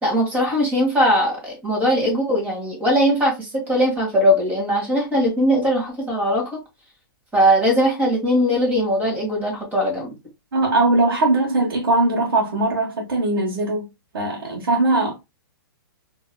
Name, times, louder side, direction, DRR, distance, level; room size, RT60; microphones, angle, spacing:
voice 1, 0.0-6.6 7.3-10.1, equal, 15° right, 1.8 m, -20 dB
voice 2, 10.5-13.9 14.1-15.1, right 2 dB, 75° right, 1.2 m, -20 dB
4.5 x 2.9 x 2.2 m
hypercardioid pair, 135°, 12 cm